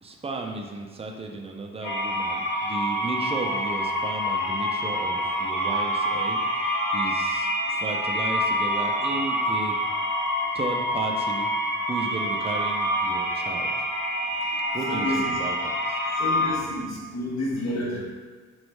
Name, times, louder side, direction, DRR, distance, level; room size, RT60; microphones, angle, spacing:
voice 1, 0.0-9.8 10.5-11.5 11.9-13.8 14.7-16.0, right 3 dB, 20° right, 1 dB, 0.4 m, -34 dB
sound 1, 1.8-16.5, equal, 75° left, 1.3 m, -26 dB
voice 2, 14.9-15.4 16.2-18.0, left 1 dB, 60° left, -2 dB, 0.9 m, -30 dB
3.1 x 2.6 x 3.2 m, 1.4 s
cardioid pair, 90°, 30 cm